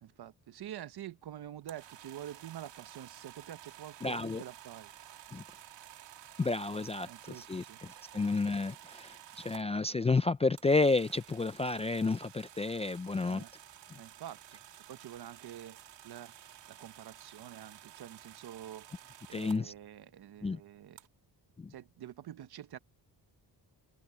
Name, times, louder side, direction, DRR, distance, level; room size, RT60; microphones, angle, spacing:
voice 1, 0.0-4.9 7.1-7.8 8.1-8.3 13.2-13.5 14.0-14.4 14.9-16.3 16.7-18.9 19.3-21.0 21.7-22.8, right 11 dB, 65° right, 1.1 m, -47 dB
sound 1, 1.6-9.6 10.6-19.6 21.0-21.1, right 12 dB, 90° right, 2.4 m, -53 dB
voice 2, 4.0-4.4 5.3-5.4 6.4-7.1 7.4-13.4 19.3-19.7 20.4-20.6 21.6-21.7, left 3 dB, 15° left, 0.3 m, -31 dB
wide cardioid pair, 135°, 42 cm